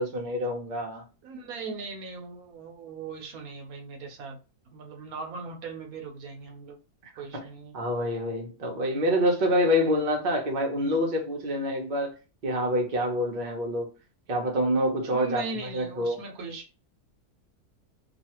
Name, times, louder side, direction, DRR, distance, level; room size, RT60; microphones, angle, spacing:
voice 1, 0.0-1.0 7.3-7.4 7.7-12.1 12.4-13.9 14.3-15.4 15.7-16.2, equal, 40° right, 0.7 m, -26 dB
voice 2, 1.2-4.4 4.7-6.8 7.2-7.7 15.1-16.7, right 4 dB, 70° right, 1.1 m, -39 dB
3.0 x 2.4 x 2.9 m
omnidirectional pair, 1.6 m